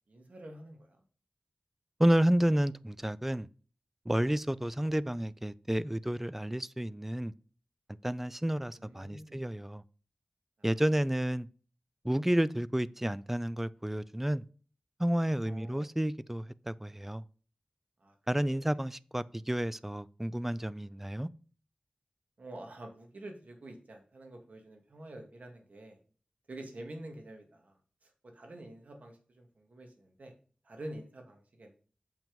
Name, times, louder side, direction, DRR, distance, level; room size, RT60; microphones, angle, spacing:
voice 1, 0.1-1.0 4.2-4.4 8.8-9.5 10.6-10.7 15.3-15.8 18.0-18.1 18.4-18.8 22.4-26.0 26.5-27.8 28.0-30.3 30.6-31.7, right 1 dB, 75° right, 2.4 m, -48 dB
voice 2, 2.0-3.5 4.1-7.3 8.0-9.8 10.6-11.5 12.0-14.4 15.0-17.2 18.3-21.3, right 1 dB, 10° right, 0.4 m, -30 dB
7.2 x 6.0 x 5.3 m
wide cardioid pair, 75°, 3 cm